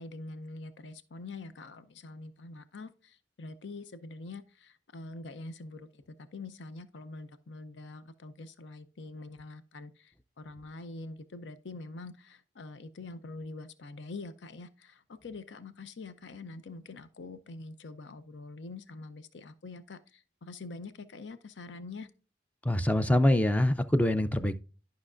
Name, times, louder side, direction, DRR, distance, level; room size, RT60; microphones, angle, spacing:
voice 1, 0.0-6.0 6.3-22.1, left 3 dB, 75° left, 0.6 m, -45 dB
voice 2, 22.6-24.6, left 1 dB, 10° left, 0.4 m, -25 dB
12.0 x 5.7 x 2.5 m
head